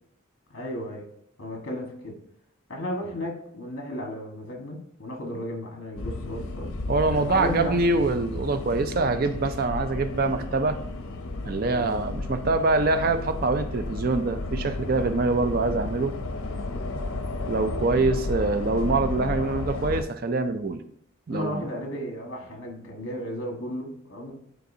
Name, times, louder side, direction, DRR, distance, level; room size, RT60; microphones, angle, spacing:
voice 1, 0.5-1.0 1.4-2.1 2.7-6.7 7.1-7.8 11.7-11.9 16.6-16.9 21.3-24.3, left 1 dB, 65° left, 1 dB, 1.5 m, -34 dB
sound 1, 6.0-20.0, left 2 dB, 90° left, 0.6 m, -33 dB
voice 2, 6.9-10.8 11.4-16.1 17.5-20.8 21.3-21.7, right 3 dB, 45° right, 9 dB, 0.4 m, -24 dB
9.2 x 4.0 x 2.7 m, 0.70 s
head